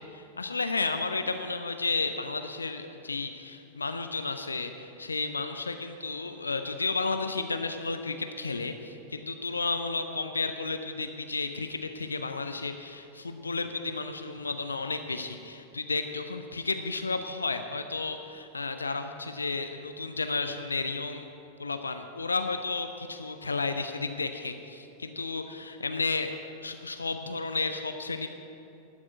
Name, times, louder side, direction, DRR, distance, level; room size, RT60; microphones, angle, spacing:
voice 1, 0.1-21.2 21.6-26.3 26.6-28.3, left 3 dB, 75° left, 8 dB, 0.5 m, -32 dB
12.0 x 6.1 x 8.8 m, 2.8 s
figure-of-eight pair, 90°, 0 cm